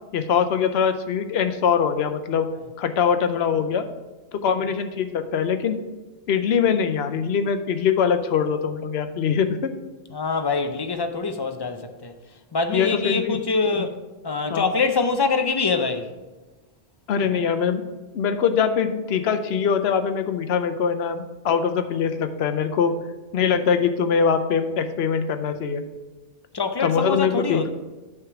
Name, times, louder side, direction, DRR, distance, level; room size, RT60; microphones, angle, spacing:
voice 1, 0.1-2.5 2.8-3.9 4.3-5.8 6.3-9.7 12.7-13.4 13.8-13.9 14.5-14.7 17.1-17.8 18.1-23.0 23.3-25.9 26.8-27.7, left 7 dB, 80° left, 0.9 m, -23 dB
voice 2, 10.1-12.1 12.5-14.0 14.2-16.1 26.5-27.7, left 4 dB, 35° left, 0.4 m, -24 dB
9.7 x 3.5 x 5.9 m
omnidirectional pair, 1.1 m